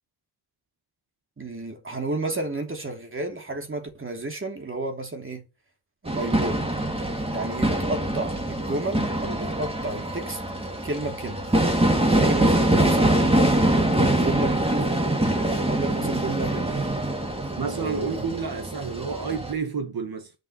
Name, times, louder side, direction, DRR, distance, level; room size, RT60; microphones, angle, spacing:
voice 1, 1.4-5.5 6.0-6.6 7.3-10.4 10.8-11.4 12.1-13.5 14.2-15.1 15.4-17.0 17.7-18.3, right 2 dB, 30° right, 3.0 m, -32 dB
sound 1, 6.1-19.5, right 1 dB, 15° right, 2.6 m, -24 dB
voice 2, 17.6-20.3, right 6 dB, 60° right, 1.8 m, -30 dB
10.5 x 5.6 x 6.6 m
wide cardioid pair, 120°, 40 cm